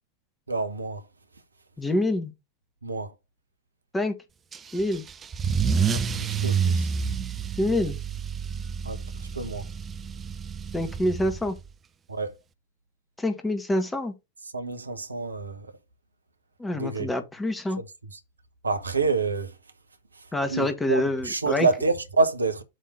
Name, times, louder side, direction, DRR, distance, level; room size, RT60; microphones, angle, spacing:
voice 1, 0.5-1.0 2.8-3.1 5.9-6.9 8.8-9.0 9.3-9.6 12.1-12.3 14.5-15.7 16.7-17.1 18.6-19.5 20.2-22.6, right 4 dB, 80° right, 1.1 m, -27 dB
voice 2, 1.8-2.3 3.9-4.1 4.7-5.0 7.6-8.0 10.7-11.5 13.2-14.1 16.6-17.8 20.3-21.7, left 1 dB, 10° left, 1.6 m, -26 dB
Car / Engine starting / Accelerating revving vroom, 4.5-11.7, right 6 dB, 20° right, 0.7 m, -29 dB
7.8 x 3.6 x 5.0 m
figure-of-eight pair, 90°, 0 cm